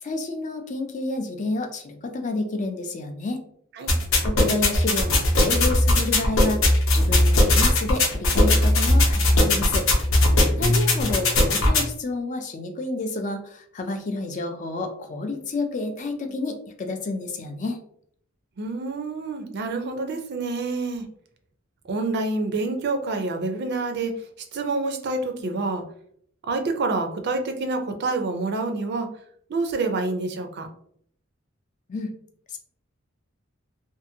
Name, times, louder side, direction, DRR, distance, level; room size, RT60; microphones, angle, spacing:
voice 1, 0.0-3.4 4.2-6.7 6.9-9.9 10.6-17.8 31.9-32.1 32.5-32.6, left 2 dB, 40° left, 5 dB, 0.4 m, -30 dB
sound 1, 3.9-11.9, left 1 dB, 80° left, 0.7 m, -19 dB
voice 2, 10.3-10.7 18.6-21.1 21.9-24.1 24.5-25.8 26.5-29.1 29.5-30.7, right 3 dB, 55° right, 5 dB, 0.4 m, -27 dB
2.6 x 2.5 x 2.7 m, 0.64 s
head